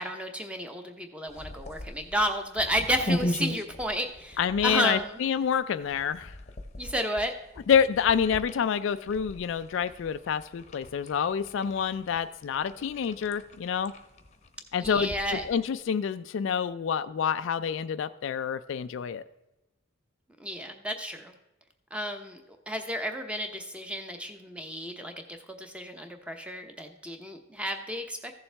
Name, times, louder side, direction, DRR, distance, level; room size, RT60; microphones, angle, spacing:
voice 1, 0.0-5.2 6.8-7.3 14.8-15.4 20.4-21.3 21.9-22.4 22.7-28.3, equal, 5° right, 5 dB, 0.8 m, -32 dB
sound 1, 1.3-15.8, left 1 dB, 35° left, 0.8 m, -39 dB
voice 2, 4.4-6.3 7.7-13.9 14.7-19.2, left 7 dB, 65° left, 13 dB, 0.3 m, -27 dB
14.5 x 7.0 x 3.4 m, 0.97 s
head